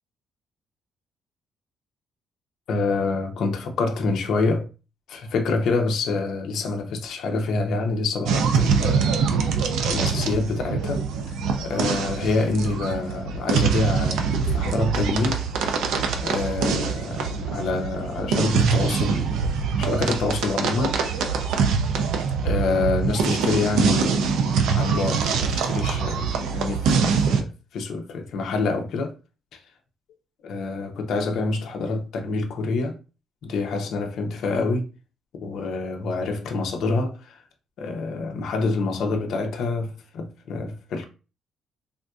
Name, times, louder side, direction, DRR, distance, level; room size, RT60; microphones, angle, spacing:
voice 1, 2.7-4.7 5.1-9.1 9.8-11.0 11.6-15.4 16.2-21.3 22.4-29.1 30.4-33.0 33.4-34.9 35.3-37.4 37.8-41.1, left 3 dB, 65° left, 0.6 m, -27 dB
sound 1, 8.3-27.4, right 5 dB, 90° right, 0.4 m, -24 dB
3.5 x 2.5 x 2.3 m
cardioid pair, 160°, 0 cm